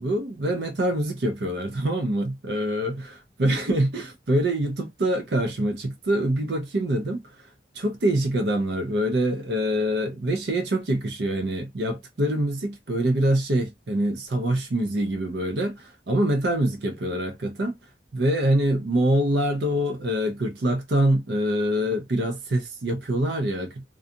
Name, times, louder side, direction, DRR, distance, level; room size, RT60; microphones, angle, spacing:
voice 1, 0.0-2.9 3.4-7.2 7.7-17.7 18.1-23.8, right 1 dB, 65° right, 0.6 m, -25 dB
2.4 x 2.4 x 2.6 m
head